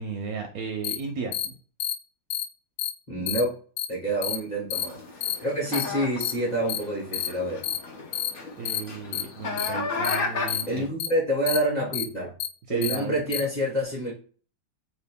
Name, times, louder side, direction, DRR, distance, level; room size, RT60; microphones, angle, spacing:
voice 1, 0.0-1.6 3.1-3.4 8.6-10.9 12.7-13.4, right 5 dB, 70° right, 3 dB, 0.9 m, -34 dB
sound 1, 0.8-1.0 1.3-1.5 1.8-1.9 2.3-2.4 2.8-2.9 3.3-3.4 3.8-3.9 4.2-4.4 4.7-4.8 5.2-5.3 5.7-5.8 6.2-6.3 6.7-6.8 7.1-7.3 7.6-7.8 8.1-8.3 8.6-8.8 9.1-9.2 9.6-9.7 10.0-10.1 10.5-10.6 11.0-11.1 11.5-11.6 11.9-12.0 12.4-12.5 12.8-12.9 13.3-13.4, left 11 dB, 80° left, 1.2 m, -28 dB
voice 2, 3.1-3.5 3.9-7.6 10.7-12.3 12.7-14.1, equal, 30° left, -4 dB, 1.0 m, -27 dB
sound 2, 4.7-10.9, left 3 dB, 60° left, 0.5 m, -34 dB
2.9 x 2.5 x 3.5 m, 0.42 s
omnidirectional pair, 1.8 m